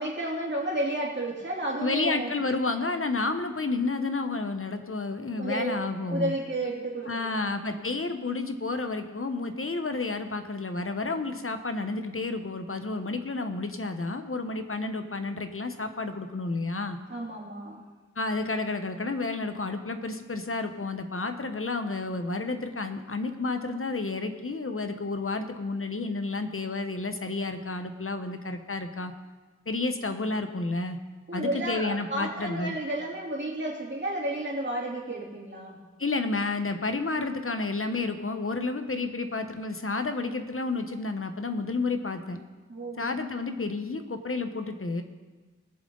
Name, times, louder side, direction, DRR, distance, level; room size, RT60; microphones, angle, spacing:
voice 1, 0.0-2.3 5.4-7.8 17.1-17.8 31.3-35.8 42.7-43.1, right 1 dB, 40° right, -3 dB, 3.2 m, -32 dB
voice 2, 1.8-6.3 7.0-17.0 18.2-29.1 29.7-31.0 31.3-32.7 36.0-42.4 43.0-45.0, left 3 dB, 45° left, 7 dB, 1.1 m, -31 dB
20.5 x 7.5 x 4.0 m, 1.3 s
wide cardioid pair, 45°, 29 cm